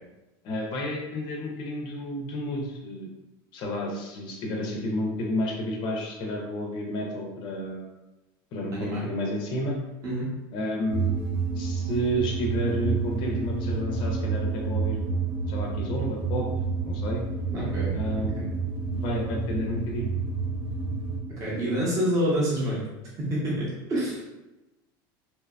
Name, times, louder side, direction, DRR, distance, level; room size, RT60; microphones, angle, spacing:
voice 1, 0.4-3.1 3.5-7.9 8.5-9.8 10.5-11.2 11.5-15.0 15.5-16.5 16.8-17.2 17.9-18.4 18.9-20.1, equal, 45° left, 0 dB, 0.4 m, -31 dB
voice 2, 8.7-9.0 10.0-10.3 17.5-17.9 18.3-18.5 21.3-22.8 23.2-24.2, equal, 30° right, -6 dB, 0.7 m, -27 dB
sound 1, 10.9-21.2, right 4 dB, 70° right, 0.6 m, -29 dB
2.8 x 2.2 x 2.3 m, 1.0 s
supercardioid pair, 150°, 11 cm